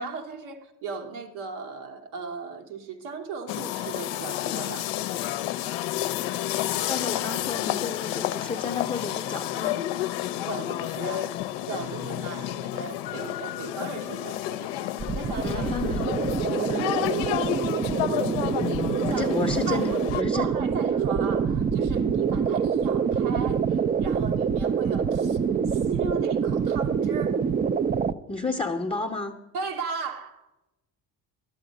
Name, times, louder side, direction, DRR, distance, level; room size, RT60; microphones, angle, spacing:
voice 1, 0.0-4.9 10.4-15.7 18.9-19.3 19.7-25.4 25.7-27.4 29.5-30.5, right 5 dB, 75° right, 1.2 m, -37 dB
sound 1, 3.5-20.2, left 13 dB, 65° left, 0.6 m, -30 dB
voice 2, 6.9-9.8 15.4-16.1 16.5-16.9 19.0-20.5 28.3-29.4, left 4 dB, 10° left, 0.7 m, -31 dB
sound 2, 15.0-28.1, right 6 dB, 20° right, 0.3 m, -26 dB
11.5 x 7.2 x 5.1 m
hypercardioid pair, 50°, 50 cm